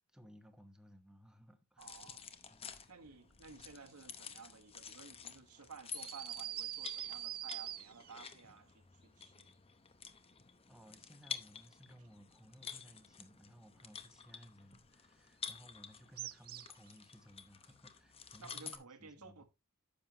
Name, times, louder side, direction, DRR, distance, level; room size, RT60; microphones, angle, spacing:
voice 1, 0.1-2.0 2.5-2.8 3.1-3.2 10.7-19.4, equal, 5° right, 0.9 m, -60 dB
sound 1, 1.8-18.8, left 7 dB, 25° left, 0.8 m, -51 dB
voice 2, 1.8-2.4 2.9-9.5 18.4-19.4, right 5 dB, 90° right, 1.4 m, -55 dB
sound 2, 5.9-8.2 16.2-16.9, right 13 dB, 40° right, 0.4 m, -43 dB
10.0 x 7.3 x 2.9 m
head